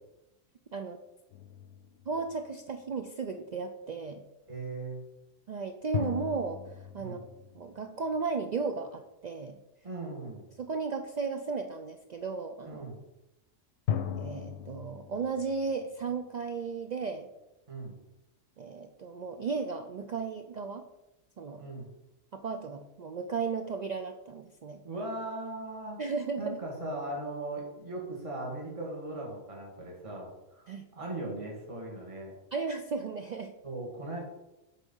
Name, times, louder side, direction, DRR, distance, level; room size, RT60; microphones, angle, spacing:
sound 1, 1.3-3.0 5.9-8.6 13.9-16.9, left 9 dB, 70° left, 0.9 m, -38 dB
voice 1, 2.1-4.2 5.5-7.2 7.5-9.6 10.6-12.8 14.2-17.3 18.6-20.8 21.4-21.7 22.3-24.8 26.0-26.6 30.7-30.8 32.5-33.5, right 4 dB, 80° right, 6 dB, 0.3 m, -35 dB
voice 2, 4.5-5.0 7.0-7.2 9.8-10.5 12.6-13.0 17.7-18.0 21.6-21.9 24.8-26.0 26.4-30.7 31.0-32.3 33.6-34.2, right 2 dB, 25° right, -2 dB, 1.8 m, -38 dB
8.1 x 4.1 x 5.4 m, 0.95 s
omnidirectional pair, 1.3 m